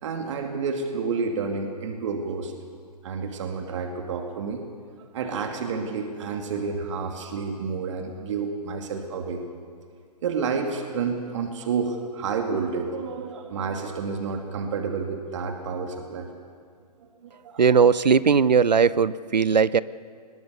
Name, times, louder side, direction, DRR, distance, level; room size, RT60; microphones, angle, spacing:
voice 1, 0.0-2.5 3.0-4.6 5.0-9.4 10.2-16.3 17.2-17.7, right 5 dB, 45° right, 4 dB, 2.5 m, -30 dB
voice 2, 17.6-19.8, right 6 dB, 90° right, 19 dB, 0.7 m, -18 dB
21.5 x 21.0 x 6.9 m, 2.1 s
hypercardioid pair, 145°, 21 cm